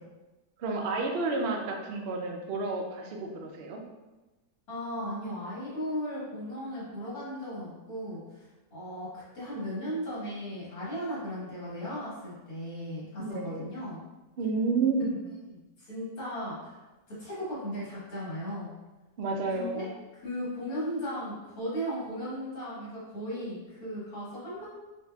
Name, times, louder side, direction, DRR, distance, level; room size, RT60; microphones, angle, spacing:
voice 1, 0.6-3.8 13.2-13.7 14.4-15.2 19.2-19.9, right 3 dB, 75° right, 1 dB, 0.5 m, -30 dB
voice 2, 4.7-9.1 9.3-14.0 15.5-16.8 17.1-18.7 19.5-24.7, equal, 75° left, -9 dB, 2.0 m, -36 dB
3.9 x 2.8 x 2.3 m, 1.1 s
omnidirectional pair, 1.6 m